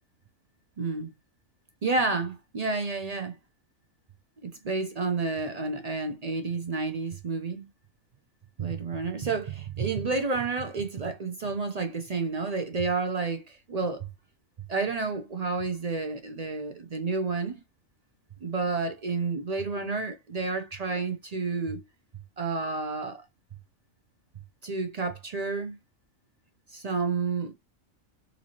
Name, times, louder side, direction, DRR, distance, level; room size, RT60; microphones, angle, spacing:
voice 1, 0.8-1.1 1.8-3.4 4.4-7.7 8.6-14.1 14.7-17.6 18.4-21.8 22.4-23.2 24.6-25.8 26.7-27.5, right 4 dB, 50° right, 0.4 m, -30 dB
3.9 x 2.7 x 2.9 m
omnidirectional pair, 1.4 m